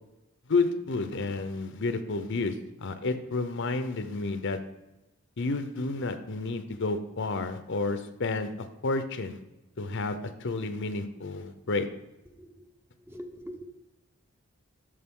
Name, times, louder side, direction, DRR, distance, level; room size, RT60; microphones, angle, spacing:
voice 1, 0.5-4.6 5.4-9.4 9.8-11.9, left 3 dB, 60° left, 9 dB, 0.7 m, -30 dB
voice 2, 13.1-13.7, equal, 10° right, 4 dB, 0.8 m, -42 dB
13.0 x 5.1 x 3.7 m, 0.96 s
head